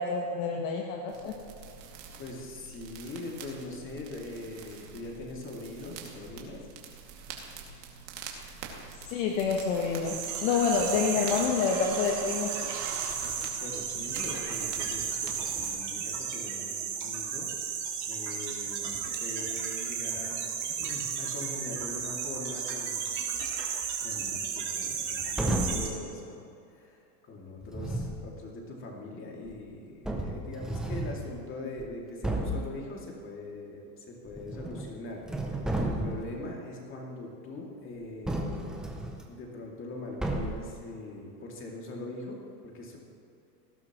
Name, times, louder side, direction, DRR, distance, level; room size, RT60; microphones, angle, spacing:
voice 1, 0.0-1.3 9.1-12.7, left 5 dB, 50° left, 1 dB, 1.3 m, -28 dB
sound 1, 1.1-15.7, right 5 dB, 80° right, 2.5 m, -45 dB
voice 2, 2.2-6.7 13.6-17.8 18.1-20.5 20.8-23.0 24.0-26.4 26.7-38.8 39.3-43.0, left 2 dB, 25° left, -1 dB, 2.5 m, -42 dB
sound 2, 10.0-25.9, right 7 dB, 35° right, 2.4 m, -34 dB
sound 3, 25.4-26.0 27.6-28.3 29.5-29.6 30.0-31.3 31.8-31.9 32.2-32.7 34.3-34.9 35.2-36.3 38.3-39.2 40.2-40.7, right 1 dB, ahead, 0.4 m, -32 dB
18.5 x 12.0 x 3.1 m, 2.7 s
supercardioid pair, 140°, 50 cm